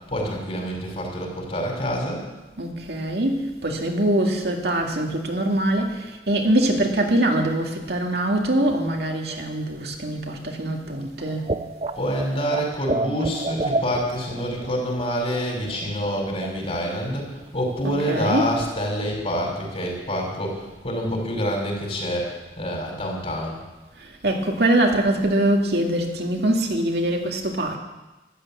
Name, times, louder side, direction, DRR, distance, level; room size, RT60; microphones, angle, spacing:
voice 1, 0.1-2.2 11.9-23.6, equal, 35° left, 5.0 m, -27 dB
voice 2, 2.6-11.5 17.8-18.5 24.0-27.8, right 1 dB, 70° right, 2.1 m, -23 dB
sound 1, 11.2-15.0 15.3-15.4 15.7-16.8 17.1-17.5 17.8-17.9 18.1-18.2 18.5-18.7, right 2 dB, 35° right, 0.5 m, -30 dB
13.5 x 12.0 x 8.6 m
head